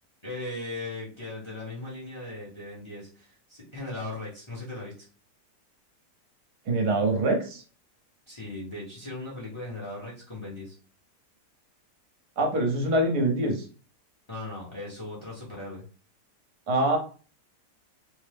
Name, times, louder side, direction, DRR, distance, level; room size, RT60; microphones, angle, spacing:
voice 1, 0.2-5.1 8.3-10.8 14.3-15.8, left 2 dB, 25° left, -5 dB, 0.8 m, -38 dB
voice 2, 6.6-7.6 12.4-13.7 16.7-17.0, right 2 dB, 75° right, 2 dB, 1.4 m, -24 dB
3.3 x 2.0 x 3.3 m, 0.39 s
omnidirectional pair, 1.7 m